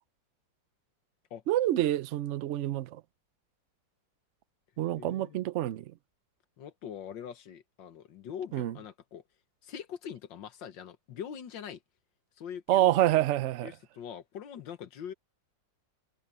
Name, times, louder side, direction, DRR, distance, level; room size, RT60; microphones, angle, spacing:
voice 1, 1.5-3.0 4.8-5.8 8.5-8.7 12.7-13.7, right 13 dB, 75° right, 0.6 m, -27 dB
voice 2, 5.0-5.5 6.6-9.2 9.6-11.8 12.4-13.0 13.6-15.1, left 8 dB, 90° left, 1.9 m, -43 dB
omnidirectional pair, 1.9 m